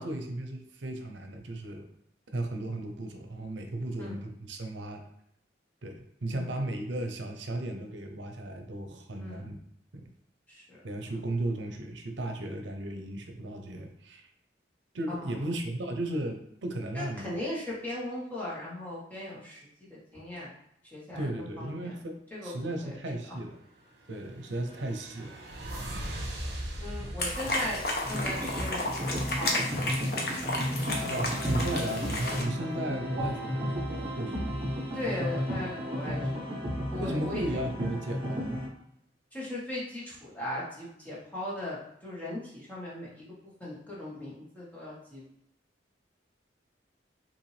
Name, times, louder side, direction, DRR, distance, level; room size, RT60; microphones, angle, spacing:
voice 1, 0.0-1.9 2.3-5.0 5.8-9.6 9.9-10.0 10.8-14.3 14.9-17.4 21.2-23.6 24.1-25.4 27.0-27.2 27.5-27.7 31.0-34.5 37.0-38.6, right 1 dB, 85° right, 4 dB, 0.7 m, -35 dB
voice 2, 10.5-11.1 15.1-15.3 16.9-20.5 20.9-21.3 21.6-21.9 22.3-22.5 22.8-23.0 25.7-25.8 26.8-29.6 34.9-36.2 36.9-37.6 39.3-43.2 43.6-45.2, left 1 dB, 10° left, -7 dB, 1.3 m, -38 dB
sound 1, 23.9-28.9, right 1 dB, 65° right, 1.3 m, -40 dB
sound 2, 27.2-32.4, left 1 dB, 55° left, 0.9 m, -32 dB
sound 3, 28.0-38.7, equal, 30° right, 1.2 m, -33 dB
5.5 x 2.7 x 3.3 m, 0.74 s
head